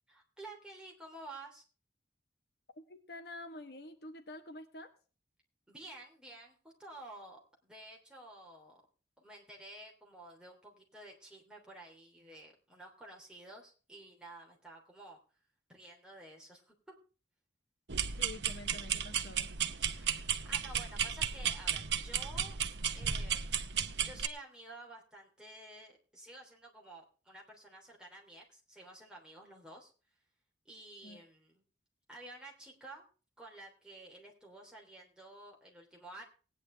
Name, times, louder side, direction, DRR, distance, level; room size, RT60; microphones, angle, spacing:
voice 1, 0.1-1.6 5.7-8.8 9.2-15.2 15.7-16.9 19.9-22.6 22.9-23.7 24.0-29.9 30.6-31.6 32.1-33.0 33.4-36.2, right 1 dB, 5° right, -1 dB, 3.1 m, -52 dB
voice 2, 2.7-4.9 18.2-19.5 31.0-31.2, left 2 dB, 55° left, 8 dB, 1.2 m, -48 dB
sound 1, 17.9-24.3, right 8 dB, 65° right, 0.9 m, -34 dB
18.0 x 9.7 x 3.3 m, 0.37 s
head